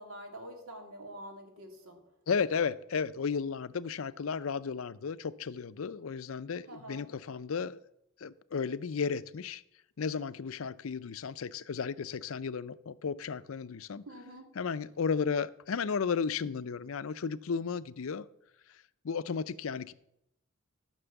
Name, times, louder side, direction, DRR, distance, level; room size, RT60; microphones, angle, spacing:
voice 1, 0.0-2.0 6.7-7.0 14.1-14.5, right 1 dB, 85° right, 2.6 m, -46 dB
voice 2, 2.3-7.8 8.2-9.6 10.0-14.0 14.6-18.3 19.0-19.9, left 5 dB, 75° left, 0.5 m, -34 dB
13.5 x 6.1 x 7.0 m
head